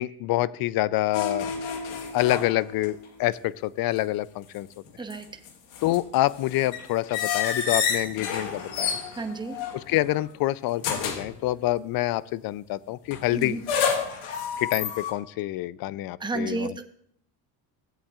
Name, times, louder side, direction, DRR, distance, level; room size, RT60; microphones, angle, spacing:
voice 1, 0.0-1.5 2.1-4.7 5.8-9.0 9.7-13.6 14.6-16.8, left 16 dB, 50° left, 20 dB, 0.4 m, -27 dB
sound 1, 1.1-3.0 3.3-3.4 4.9-10.2 10.8-11.4 13.1-15.1, left 6 dB, 80° left, 1.5 m, -30 dB
voice 2, 9.1-9.6 13.3-13.6 16.2-16.8, right 3 dB, 10° right, 5 dB, 0.9 m, -31 dB
16.0 x 8.4 x 2.4 m, 0.67 s
supercardioid pair, 95°, 49 cm